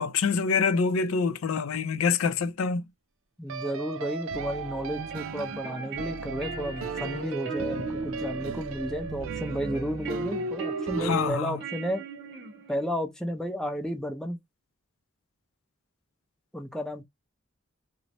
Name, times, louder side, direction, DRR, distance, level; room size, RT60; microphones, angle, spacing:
voice 1, 0.0-2.8 11.0-11.6, left 5 dB, 85° left, 0.4 m, -26 dB
sound 1, 1.2-1.4 3.5-11.3, right 4 dB, 70° right, 0.4 m, -36 dB
voice 2, 3.4-12.0 12.7-14.4 16.5-17.0, equal, 5° left, 0.5 m, -32 dB
sound 2, 4.8-12.9, right 3 dB, 55° right, 0.9 m, -39 dB
3.0 x 2.0 x 2.5 m
head